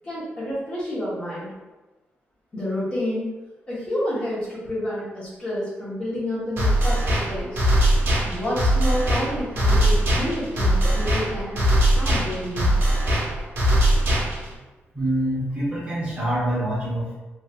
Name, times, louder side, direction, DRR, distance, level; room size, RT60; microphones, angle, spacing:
voice 1, 0.0-1.5 2.5-3.3 3.7-7.7 8.2-11.6 11.9-12.7, left 1 dB, 25° left, -9 dB, 1.2 m, -29 dB
sound 1, 6.6-14.5, right 1 dB, 65° right, 1.1 m, -21 dB
voice 2, 14.9-17.1, right 1 dB, 20° right, -7 dB, 1.1 m, -25 dB
3.1 x 3.0 x 2.5 m, 1.2 s
wide cardioid pair, 160°, 4 cm